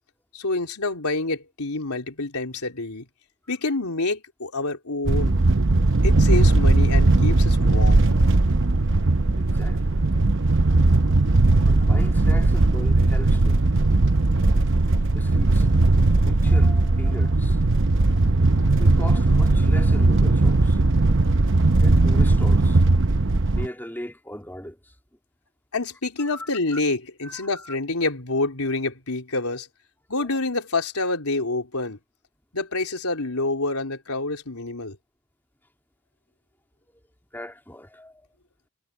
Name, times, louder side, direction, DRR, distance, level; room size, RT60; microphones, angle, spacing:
voice 1, 0.3-3.1 3.5-5.4 6.0-8.1 25.7-29.7 30.1-32.0 32.5-35.0, left 2 dB, 90° left, 3.9 m, -27 dB
sound 1, 5.1-23.7, right 2 dB, 55° right, 0.8 m, -18 dB
voice 2, 9.3-10.0 11.7-13.6 15.1-15.7 16.2-17.6 18.8-21.3 21.8-22.8 23.5-24.9 26.2-26.8 27.2-27.5 30.2-30.3 37.3-38.3, equal, 10° left, 3.1 m, -39 dB
head